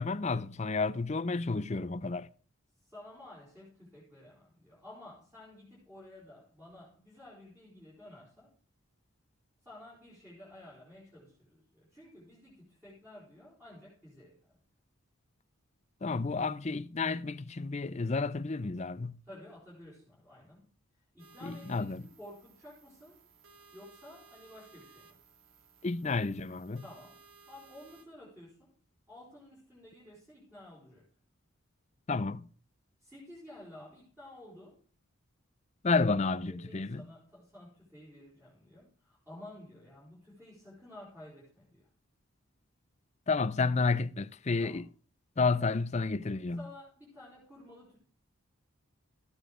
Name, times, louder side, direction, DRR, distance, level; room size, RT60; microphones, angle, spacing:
voice 1, 0.0-2.3 16.0-19.2 21.4-22.0 25.8-26.8 32.1-32.5 35.8-37.0 43.3-44.9 45.4-46.7, left 4 dB, 30° left, 0.5 m, -31 dB
voice 2, 2.7-8.5 9.6-14.6 19.3-23.2 23.7-25.2 26.8-28.8 29.1-31.1 33.0-34.8 36.2-41.9 44.6-44.9 46.6-48.0, left 1 dB, 10° right, 5.1 m, -52 dB
sound 1, 21.2-28.0, right 5 dB, 75° right, 2.3 m, -59 dB
14.5 x 9.0 x 5.0 m
head